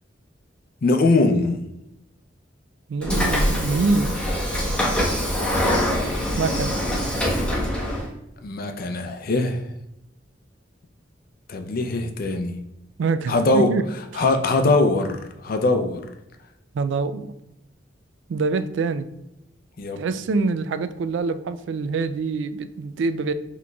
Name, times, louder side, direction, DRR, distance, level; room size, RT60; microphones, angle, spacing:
voice 1, 0.8-1.7 8.4-9.6 11.5-12.6 13.3-13.7 14.1-16.0 19.8-20.1, left 2 dB, 50° left, 6 dB, 0.5 m, -21 dB
voice 2, 2.9-4.1 6.4-6.7 13.0-13.8 14.1-14.2 16.7-17.3 18.3-19.1 20.0-23.3, right 4 dB, 70° right, 12 dB, 0.3 m, -25 dB
Train / Sliding door, 3.0-8.1, equal, 5° left, 0.9 m, -23 dB
6.1 x 3.0 x 2.3 m, 0.87 s
head